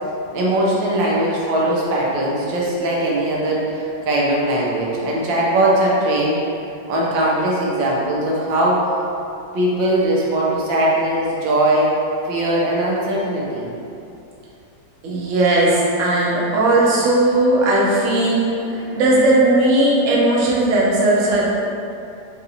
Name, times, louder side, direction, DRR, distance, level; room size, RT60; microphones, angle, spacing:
voice 1, 0.3-6.4 6.9-8.8 9.5-12.0 12.2-13.7, right 1 dB, 85° right, -4 dB, 1.4 m, -20 dB
voice 2, 15.0-21.5, right 2 dB, 60° right, -5 dB, 0.8 m, -17 dB
4.0 x 2.5 x 2.7 m, 2.7 s
omnidirectional pair, 2.0 m